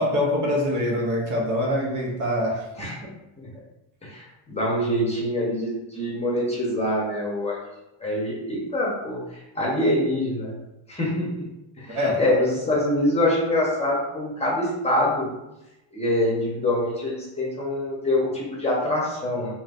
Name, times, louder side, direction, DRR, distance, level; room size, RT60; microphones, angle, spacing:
voice 1, 0.0-3.1 11.9-12.4, left 1 dB, 40° right, -2 dB, 0.9 m, -25 dB
voice 2, 4.0-7.6 8.0-9.2 9.5-10.5 10.9-11.4 11.8-15.3 15.9-19.5, left 1 dB, 15° left, -4 dB, 0.9 m, -25 dB
5.0 x 2.8 x 2.5 m, 0.93 s
cardioid pair, 145°, 46 cm